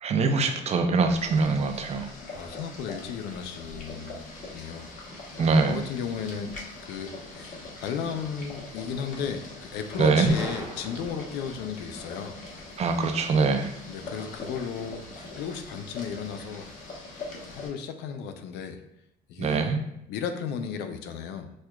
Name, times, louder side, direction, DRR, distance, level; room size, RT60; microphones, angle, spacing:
voice 1, 0.0-2.1 5.4-5.9 10.0-10.3 12.8-13.7 19.4-19.8, right 4 dB, 40° right, 6 dB, 0.5 m, -23 dB
Boiling, 1.1-17.7, left 2 dB, 50° left, 1.0 m, -42 dB
voice 2, 2.3-4.9 5.7-6.5 6.8-12.4 13.9-16.7 17.5-18.8 19.3-19.7 20.1-21.5, left 7 dB, 85° left, 7 dB, 0.5 m, -35 dB
Gunshot gunfire, 10.3-11.5, right 2 dB, 20° right, 0.9 m, -41 dB
6.2 x 2.2 x 2.3 m, 0.81 s
cardioid pair, 110°, 17 cm